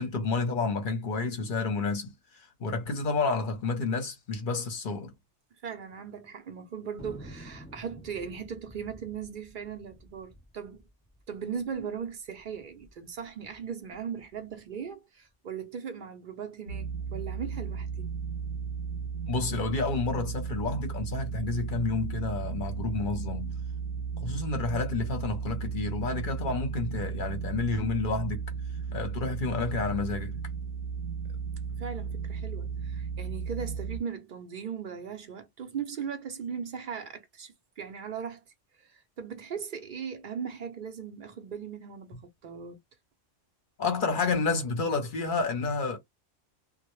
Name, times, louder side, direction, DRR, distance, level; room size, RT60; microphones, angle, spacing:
voice 1, 0.0-5.1 19.3-23.5 24.2-28.4 28.9-30.3 42.1-42.2 43.8-46.0, left 3 dB, 50° left, 0.7 m, -30 dB
voice 2, 5.6-10.8 11.3-18.1 31.8-38.4 38.8-42.2 42.4-42.8, right 7 dB, 60° right, 0.5 m, -38 dB
Thunder, 7.0-11.8 12.1-12.2 12.4-12.9 13.4-14.6, equal, 15° left, 0.9 m, -49 dB
sound 1, 16.7-34.0, right 6 dB, 75° right, 1.0 m, -35 dB
2.1 x 2.1 x 3.0 m
omnidirectional pair, 1.2 m